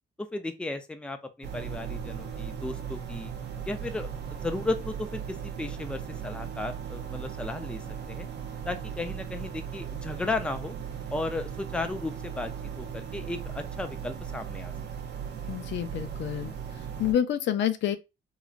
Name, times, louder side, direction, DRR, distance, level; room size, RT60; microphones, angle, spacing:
voice 1, 0.2-3.3 3.7-8.3 8.7-10.8 11.1-14.7, left 2 dB, 5° left, 0.4 m, -35 dB
sound 1, 1.4-17.1, right 7 dB, 60° right, 0.6 m, -37 dB
voice 2, 15.5-18.0, left 10 dB, 65° left, 0.4 m, -29 dB
3.1 x 2.4 x 2.4 m
cardioid pair, 90°, 20 cm